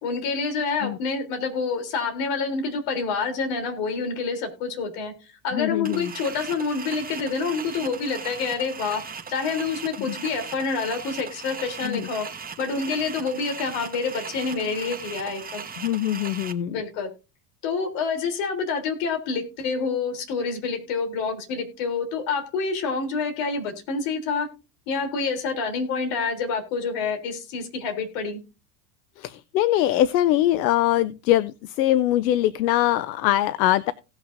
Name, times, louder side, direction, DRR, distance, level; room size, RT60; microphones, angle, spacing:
voice 1, 0.0-5.1 5.4-9.0 9.3-12.3 12.6-15.6 16.7-17.1 17.6-24.5 24.9-28.4, left 4 dB, 65° left, 5 dB, 3.5 m, -27 dB
voice 2, 5.5-6.1 10.1-10.2 11.8-12.1 15.8-16.8 29.2-33.9, left 13 dB, 85° left, 16 dB, 0.7 m, -22 dB
sound 1, 5.9-16.5, right 6 dB, 20° right, 1.1 m, -38 dB
17.5 x 6.0 x 2.6 m, 0.30 s
supercardioid pair, 100°, 49 cm